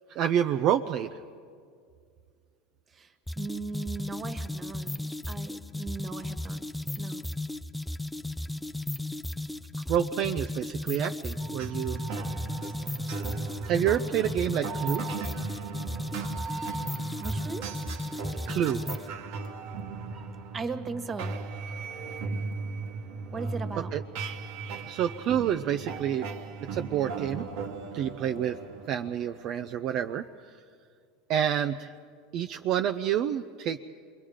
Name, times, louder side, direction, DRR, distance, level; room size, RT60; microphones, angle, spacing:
voice 1, 0.1-1.2 9.9-12.0 13.6-15.0 18.5-18.8 23.9-24.0 24.9-26.3 26.7-27.5 27.9-28.6 28.9-30.2 31.3-31.9 32.3-33.8, right 10 dB, 50° right, 6 dB, 0.6 m, -28 dB
voice 2, 2.9-6.7 7.0-7.2 17.2-17.6 20.1-21.4 23.3-23.9 26.9-27.1, right 4 dB, 30° right, 8 dB, 1.7 m, -38 dB
sound 1, 3.3-19.1, left 2 dB, 5° left, 0.5 m, -35 dB
sound 2, 11.4-30.2, right 4 dB, 65° right, 1.4 m, -37 dB
27.5 x 22.5 x 5.1 m, 2.2 s
hypercardioid pair, 105°, 0 cm